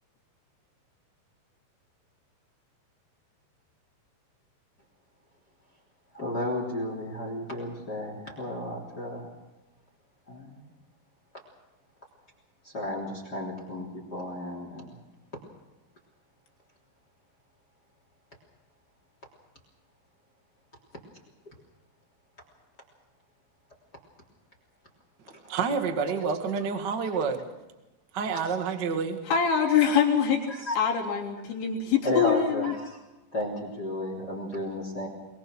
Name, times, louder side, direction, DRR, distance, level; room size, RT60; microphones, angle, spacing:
voice 1, 6.1-9.3 10.3-10.7 12.6-15.0 25.4-25.5 30.5-30.8 32.0-33.0 33.3-35.1, left 1 dB, 25° left, 2 dB, 3.2 m, -33 dB
voice 2, 25.5-27.5 28.1-29.2, right 5 dB, 50° right, 6 dB, 1.2 m, -28 dB
voice 3, 29.3-30.5 30.8-32.7, left 7 dB, 70° left, -1 dB, 5.6 m, -24 dB
23.0 x 22.0 x 6.3 m, 1.1 s
omnidirectional pair, 5.3 m